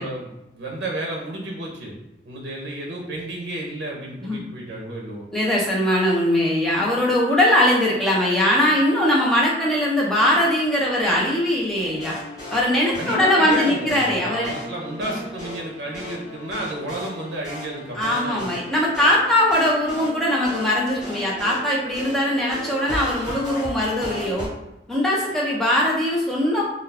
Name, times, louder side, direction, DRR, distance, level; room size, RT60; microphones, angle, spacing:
voice 1, 0.0-1.9 2.2-5.3 12.9-18.4, right 1 dB, 80° right, -2 dB, 0.6 m, -32 dB
voice 2, 5.3-12.2 12.5-14.5 17.9-24.5 24.9-26.6, left 1 dB, ahead, -5 dB, 0.5 m, -21 dB
sound 1, 11.7-24.5, left 1 dB, 20° left, 0.9 m, -36 dB
2.3 x 2.2 x 3.3 m, 0.96 s
head